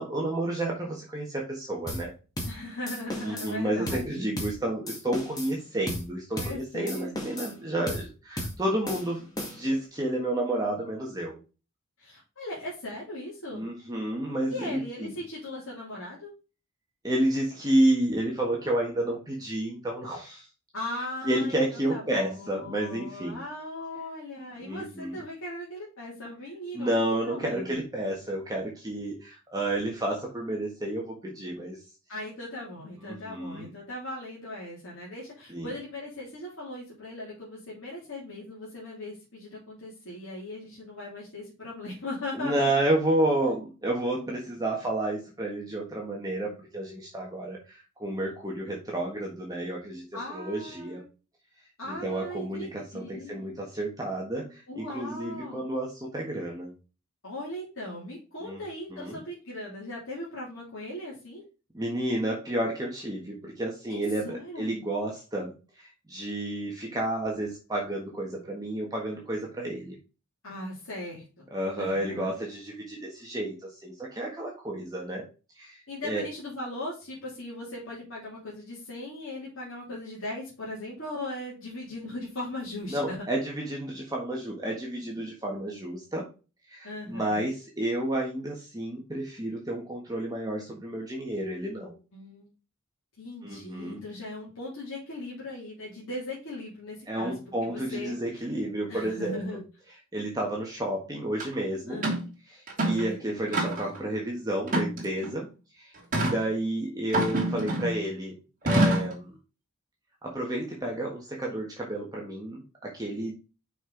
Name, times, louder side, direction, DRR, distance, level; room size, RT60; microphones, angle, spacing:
voice 1, 0.0-2.1 3.2-9.3 9.6-11.4 13.5-15.2 17.0-20.5 21.2-23.4 24.6-25.2 26.7-31.8 33.0-33.7 35.5-35.7 42.3-50.0 50.3-51.0 51.9-56.7 58.4-58.6 58.9-59.2 61.7-70.0 71.5-75.2 75.5-75.8 76.0-76.2 82.9-86.3 86.7-92.0 93.4-94.0 97.1-99.6 100.1-102.0 102.5-105.5 105.7-108.3 108.6-109.4 110.2-113.3, right 1 dB, 15° right, -2 dB, 1.4 m, -31 dB
sound 1, 1.9-2.1 2.4-2.6 2.9-3.5 3.9-4.1 4.4-4.6 4.9-5.5 5.9-6.1 6.4-6.6 6.9-7.6 7.9-8.1 8.4-8.6 8.9-9.8, equal, 20° left, 2.0 m, -35 dB
voice 2, 2.4-4.2 6.3-7.3 12.0-13.6 14.5-16.3 20.7-27.8 32.1-42.7 50.1-51.0 51.8-53.4 54.7-55.6 57.2-61.4 63.9-64.7 70.4-71.5 71.8-72.3 75.9-83.2 86.8-87.4 92.1-92.5 93.2-97.3 97.6-98.4 98.9-99.6 101.9-102.2 102.8-103.4, left 1 dB, 65° left, -6 dB, 3.0 m, -38 dB
sound 2, 101.4-101.5 102.0-102.3 102.7-103.1 103.5-104.0 104.7-105.3 106.1-106.4 107.1-108.0 108.7-109.2, right 1 dB, 40° right, 3.0 m, -26 dB
6.2 x 5.5 x 3.8 m, 0.32 s
head